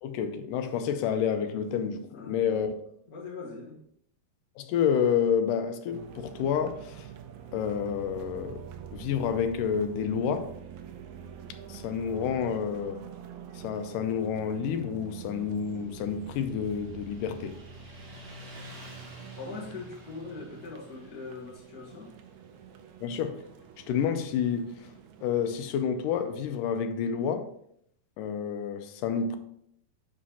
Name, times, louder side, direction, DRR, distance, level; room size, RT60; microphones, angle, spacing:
voice 1, 0.0-2.7 4.6-7.1 7.5-8.7 8.9-10.5 11.7-13.0 13.5-17.6 23.0-23.4 23.9-24.9 25.2-27.5 28.2-29.4, left 7 dB, 80° left, 2.1 m, -29 dB
voice 2, 2.1-2.7 3.1-3.8 19.4-22.1, left 4 dB, 40° left, 1.4 m, -41 dB
sound 1, 5.9-25.7, right 8 dB, 85° right, 1.6 m, -46 dB
Motorcycle, 15.3-26.4, right 1 dB, 40° right, 2.2 m, -51 dB
5.8 x 5.1 x 5.5 m
omnidirectional pair, 4.0 m